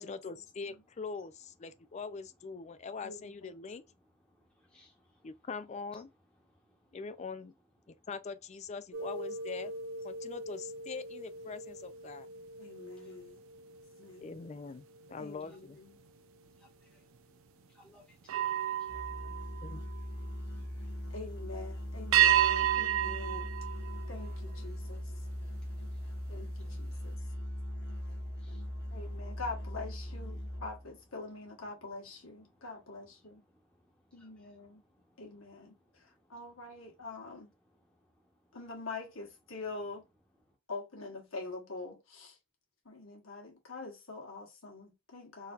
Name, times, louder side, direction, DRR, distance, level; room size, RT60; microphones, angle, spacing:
voice 1, 0.0-3.8 5.2-6.1 6.9-7.5 8.1-9.7 10.0-12.3 14.2-15.8 19.6-19.8, left 4 dB, 35° left, 0.4 m, -43 dB
voice 2, 1.7-2.0 2.6-2.9 3.5-5.4 5.9-6.0 6.4-7.1 7.8-8.1 8.5-8.6 10.1-10.4 12.2-15.2 15.5-15.6 16.0-38.6 39.5-39.9 40.3-40.6, left 1 dB, 5° left, 1.0 m, -68 dB
voice 3, 3.0-3.5 12.6-13.4 14.0-14.4 15.2-15.9 21.1-23.5 24.1-25.0 26.3-27.2 28.9-33.4 34.1-34.8 35.2-35.7 36.3-37.5 38.5-40.0 40.7-42.4 42.8-45.5, left 3 dB, 90° left, 1.6 m, -44 dB
sound 1, 8.9-14.5 15.0-15.3 18.2-20.4 22.1-24.7, right 11 dB, 85° right, 0.4 m, -32 dB
Musical instrument, 18.9-30.9, equal, 55° left, 1.2 m, -40 dB
3.9 x 2.8 x 2.5 m
head